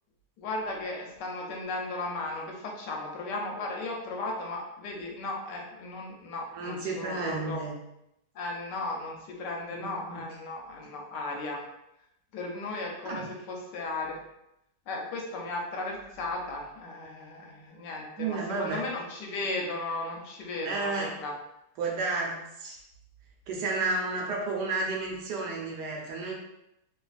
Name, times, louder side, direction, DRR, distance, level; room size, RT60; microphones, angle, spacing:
voice 1, 0.4-7.6 8.4-11.6 12.3-14.2 14.9-21.3, left 2 dB, 85° left, 0 dB, 1.2 m, -36 dB
voice 2, 6.5-7.8 9.7-10.3 13.0-13.3 18.2-18.8 20.6-21.1 21.8-22.8 23.5-26.3, right 3 dB, 75° right, -2 dB, 1.2 m, -32 dB
3.2 x 2.3 x 2.4 m, 0.84 s
omnidirectional pair, 1.9 m